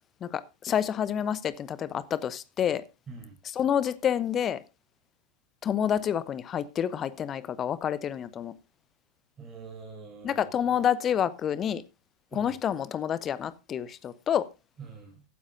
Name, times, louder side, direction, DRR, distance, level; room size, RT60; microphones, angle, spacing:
voice 1, 0.2-2.8 3.6-4.6 5.6-8.5 10.2-11.8 12.3-14.5, left 9 dB, 25° left, 0.9 m, -28 dB
voice 2, 3.1-3.4 9.4-10.5 12.3-12.5 14.8-15.2, right 4 dB, 20° right, 5.8 m, -44 dB
15.5 x 12.5 x 2.6 m
figure-of-eight pair, 90°, 0 cm